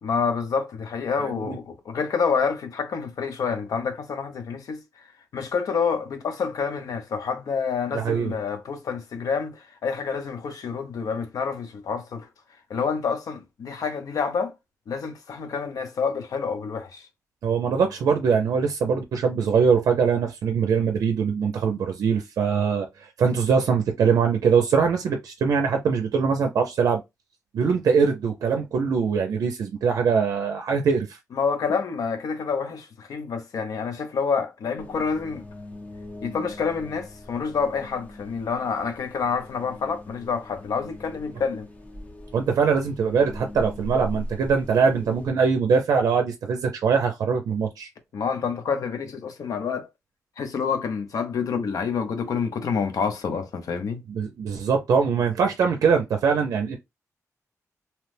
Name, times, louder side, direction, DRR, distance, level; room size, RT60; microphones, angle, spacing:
voice 1, 0.0-4.8 5.3-12.3 12.7-14.5 14.9-17.1 31.3-35.4 36.2-41.7 48.1-49.9 50.4-54.0, left 5 dB, 80° left, 0.7 m, -28 dB
voice 2, 1.3-1.6 7.9-8.3 17.4-27.0 27.5-31.2 42.3-47.9 54.1-56.8, right 6 dB, 85° right, 0.4 m, -22 dB
sound 1, 34.8-45.3, left 1 dB, 25° left, 0.7 m, -41 dB
2.8 x 2.0 x 3.2 m
wide cardioid pair, 100°, 6 cm